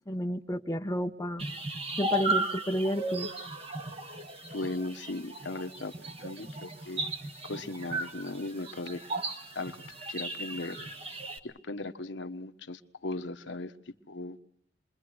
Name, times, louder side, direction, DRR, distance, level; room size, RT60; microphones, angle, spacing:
voice 1, 0.1-1.4 2.0-3.3, equal, 15° left, 4 dB, 0.8 m, -31 dB
sound 1, 1.4-11.4, right 2 dB, 30° right, 1.7 m, -35 dB
voice 2, 4.5-7.0 7.4-9.0 9.5-9.8 10.1-10.8 11.4-13.7 14.1-14.4, left 2 dB, 70° left, 8 dB, 1.2 m, -37 dB
28.0 x 22.0 x 6.2 m, 0.74 s
head